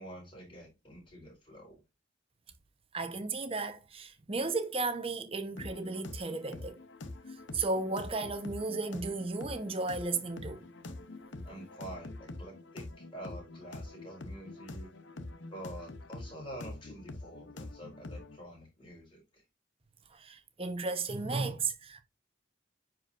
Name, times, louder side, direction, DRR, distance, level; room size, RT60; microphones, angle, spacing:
voice 1, 0.0-1.8 11.4-14.9 15.5-19.4, right 1 dB, 25° left, 4.6 m, -47 dB
voice 2, 2.9-6.8 7.3-10.7 20.1-22.0, right 3 dB, 30° right, 1.0 m, -34 dB
sound 1, 5.6-18.4, left 2 dB, 70° left, 0.8 m, -45 dB
9.7 x 4.7 x 2.6 m
head